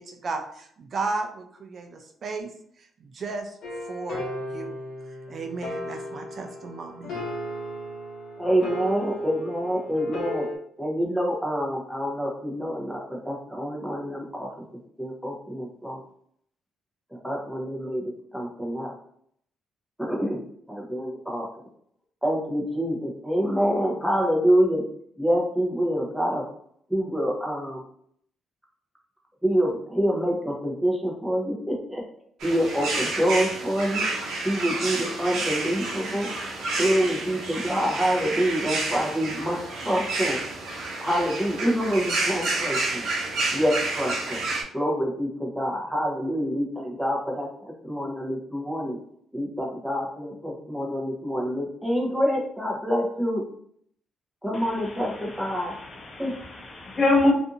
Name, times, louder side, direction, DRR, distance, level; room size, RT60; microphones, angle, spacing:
voice 1, 0.0-2.5 2.8-3.6 3.8-4.2 4.5-4.8 5.3-7.2, right 3 dB, 50° right, 0.4 m, -34 dB
sound 1, 3.6-10.6, equal, 70° left, 0.7 m, -35 dB
voice 2, 8.4-10.4 10.8-13.0 13.2-14.5 15.0-16.0 17.2-18.9 20.0-20.4 20.7-21.5 22.2-24.8 25.2-26.4 26.9-27.8 29.4-32.0 32.4-34.1 34.4-36.3 36.8-39.6 39.8-40.4 41.0-43.0 43.5-44.4 44.7-47.5 47.8-49.0 49.3-53.4 54.4-55.7 56.2-56.3, equal, 5° right, 0.9 m, -26 dB
sound 2, 32.4-44.6, right 3 dB, 80° right, 0.7 m, -30 dB
voice 3, 54.5-57.3, left 2 dB, 35° left, 0.6 m, -26 dB
2.6 x 2.5 x 2.6 m
cardioid pair, 90°, 0 cm